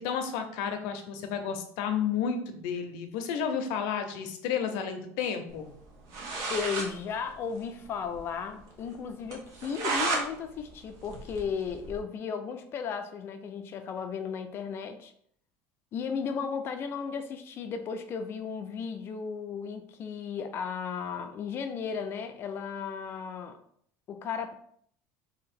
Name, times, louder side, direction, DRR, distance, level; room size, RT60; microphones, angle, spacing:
voice 1, 0.0-5.7, left 7 dB, 75° left, 6 dB, 0.7 m, -31 dB
sound 1, 5.8-5.9 6.1-6.9 7.2-7.3 7.6-7.7 8.1-8.2 8.6-8.7 9.3-10.3 10.6-12.0, right 3 dB, 55° right, 0.9 m, -32 dB
voice 2, 6.5-15.1 15.9-23.6 24.1-24.6, left 6 dB, 40° left, 7 dB, 0.5 m, -35 dB
2.9 x 2.8 x 4.2 m, 0.65 s
cardioid pair, 150°, 7 cm